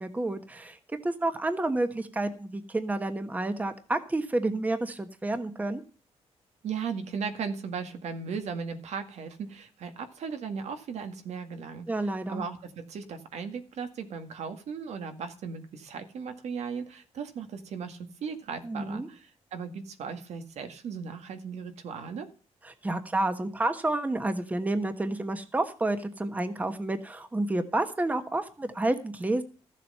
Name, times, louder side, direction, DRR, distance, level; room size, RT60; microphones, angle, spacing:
voice 1, 0.0-5.8 11.9-12.4 18.6-19.1 22.6-29.4, right 2 dB, 15° right, 9 dB, 1.2 m, -30 dB
voice 2, 6.6-22.3, right 6 dB, 75° right, 7 dB, 1.9 m, -37 dB
14.5 x 7.5 x 5.5 m, 0.37 s
wide cardioid pair, 155°, 11 cm